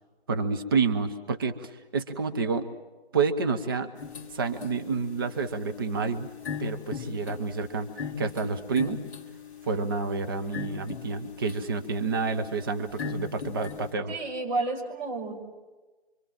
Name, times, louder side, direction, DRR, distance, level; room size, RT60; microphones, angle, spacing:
voice 1, 0.3-2.7 3.1-3.9 4.3-6.3 6.6-9.0 9.6-14.1, right 4 dB, 20° right, 7 dB, 0.8 m, -29 dB
sound 1, 4.0-13.9, left 6 dB, 20° left, 1.7 m, -40 dB
voice 2, 14.1-15.4, right 3 dB, 45° right, 0 dB, 5.9 m, -31 dB
25.5 x 25.0 x 7.6 m, 1.2 s
figure-of-eight pair, 155°, 32 cm